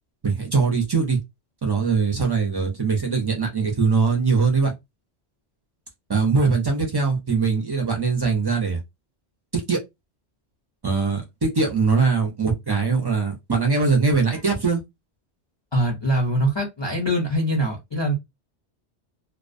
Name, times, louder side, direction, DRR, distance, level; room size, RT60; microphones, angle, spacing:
voice 1, 0.2-1.2 1.6-4.7 6.1-8.8 9.5-9.8 10.8-14.8, right 4 dB, 40° right, 0.3 m, -21 dB
voice 2, 15.7-18.1, right 1 dB, 35° left, 0.5 m, -23 dB
2.3 x 2.2 x 2.5 m
omnidirectional pair, 1.2 m